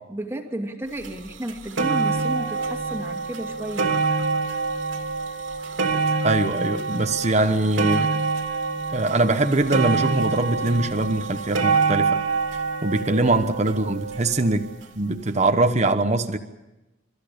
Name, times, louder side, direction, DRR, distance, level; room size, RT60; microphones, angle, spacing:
voice 1, 0.1-4.0, right 1 dB, 15° right, 2.4 m, -32 dB
sound 1, 1.0-1.1 1.5-14.7 15.4-15.5, right 4 dB, 85° right, 2.7 m, -26 dB
voice 2, 6.2-8.1 8.9-12.1 12.8-14.7 15.0-16.4, right 2 dB, 35° right, 1.1 m, -22 dB
29.5 x 14.5 x 8.6 m
head